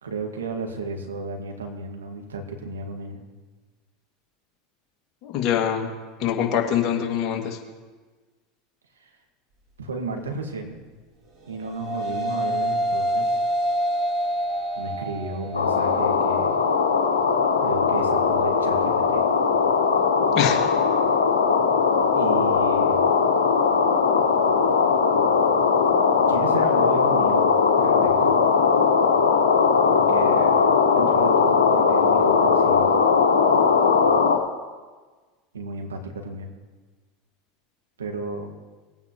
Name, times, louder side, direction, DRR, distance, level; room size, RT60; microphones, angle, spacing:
voice 1, 0.0-3.2 9.0-9.2 9.8-10.8 11.5-13.4 14.7-16.6 17.6-19.2 22.2-23.0 26.3-28.4 29.9-30.6 30.9-32.9 35.5-36.6 38.0-38.6, right 3 dB, 90° right, 4 dB, 1.7 m, -33 dB
voice 2, 5.2-5.9 6.2-7.6 20.3-20.6, left 9 dB, 50° left, 1 dB, 2.2 m, -24 dB
sound 1, 11.4-20.6, right 1 dB, 50° right, 2.8 m, -29 dB
sound 2, 15.5-34.4, left 5 dB, 90° left, 1.3 m, -19 dB
20.0 x 9.1 x 3.0 m, 1.4 s
hypercardioid pair, 85°, 0 cm